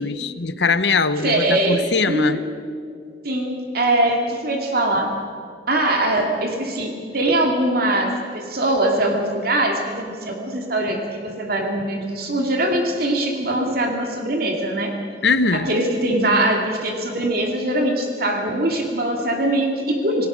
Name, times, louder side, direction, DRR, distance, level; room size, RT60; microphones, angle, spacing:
voice 1, 0.0-2.4 15.2-15.7, left 4 dB, 70° left, 13 dB, 1.0 m, -21 dB
voice 2, 1.2-2.4 3.2-5.1 5.7-15.0 15.5-20.3, right 1 dB, 60° right, 2 dB, 2.6 m, -22 dB
28.0 x 18.5 x 6.3 m, 2.2 s
head